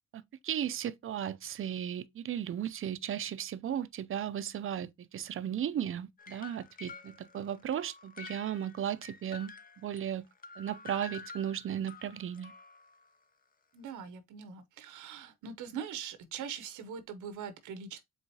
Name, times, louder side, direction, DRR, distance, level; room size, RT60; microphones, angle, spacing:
voice 1, 0.1-10.2 10.6-12.5, right 10 dB, 45° right, 0.5 m, -36 dB
sound 1, 6.2-10.1 10.4-13.1, left 6 dB, 30° left, 0.5 m, -50 dB
voice 2, 13.7-18.0, right 7 dB, 85° right, 0.8 m, -42 dB
4.6 x 3.6 x 2.7 m
cardioid pair, 90°, 30 cm